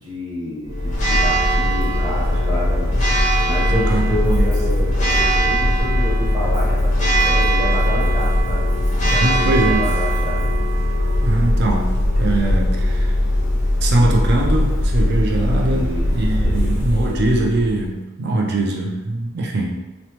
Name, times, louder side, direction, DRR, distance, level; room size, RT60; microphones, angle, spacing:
voice 1, 0.0-3.0 3.4-8.6 9.1-10.4 15.5-16.1 16.4-16.7, left 1 dB, 20° right, -8 dB, 0.9 m, -29 dB
Church bell, 0.7-17.9, equal, 35° left, 0.4 m, -19 dB
voice 2, 3.7-4.5 9.0-9.8 11.2-13.1 13.8-19.9, right 2 dB, 50° right, 0 dB, 0.4 m, -21 dB
3.0 x 2.0 x 2.8 m, 1.1 s
head